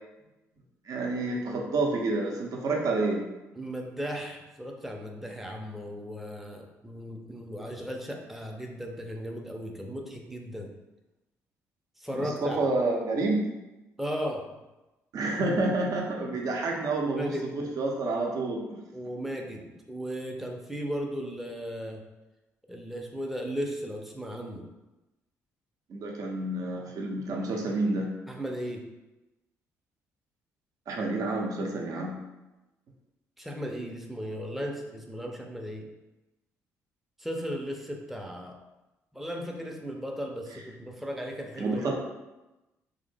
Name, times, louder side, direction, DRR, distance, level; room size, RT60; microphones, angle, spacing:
voice 1, 0.9-3.3 12.1-13.5 15.1-18.8 25.9-28.1 30.9-32.2 41.6-41.9, right 2 dB, 50° right, 0 dB, 0.6 m, -29 dB
voice 2, 3.5-10.7 12.0-12.6 14.0-14.5 17.0-17.4 18.9-22.0 22.7-24.7 28.3-28.8 33.4-35.9 37.2-38.6 39.1-41.9, equal, ahead, 1 dB, 0.5 m, -36 dB
3.3 x 2.0 x 3.3 m, 1.0 s
figure-of-eight pair, 45°, 8 cm